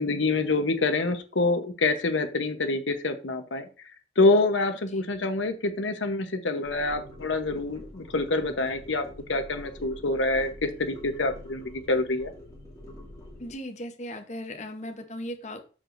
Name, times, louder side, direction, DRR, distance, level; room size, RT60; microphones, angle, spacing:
voice 1, 0.0-3.7 4.2-9.0 9.3-12.3, left 2 dB, 85° left, 8 dB, 1.0 m, -26 dB
sound 1, 6.6-13.5, left 1 dB, 20° left, 2.4 m, -46 dB
voice 2, 13.4-15.6, equal, 40° left, 5 dB, 0.9 m, -37 dB
12.5 x 4.9 x 2.6 m, 0.36 s
head